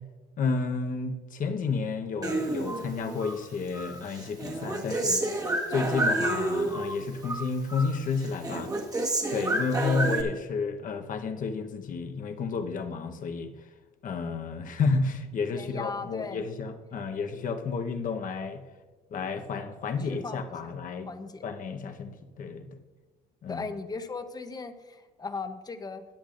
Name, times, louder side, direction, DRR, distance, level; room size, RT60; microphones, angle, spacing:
voice 1, 0.4-5.3 5.7-8.7 9.3-13.5 14.0-18.6 19.1-21.1 21.4-22.7 23.4-23.6, left 4 dB, 50° left, 5 dB, 1.1 m, -31 dB
Human voice, 2.2-3.4 3.7-6.9 7.2-8.0 8.2-10.2, right 2 dB, 20° right, 1.5 m, -29 dB
voice 2, 15.5-16.5 20.0-20.7 21.1-21.4 23.5-26.1, left 4 dB, 20° left, 9 dB, 0.9 m, -37 dB
16.0 x 10.0 x 2.6 m, 1.3 s
cardioid pair, 110°, 17 cm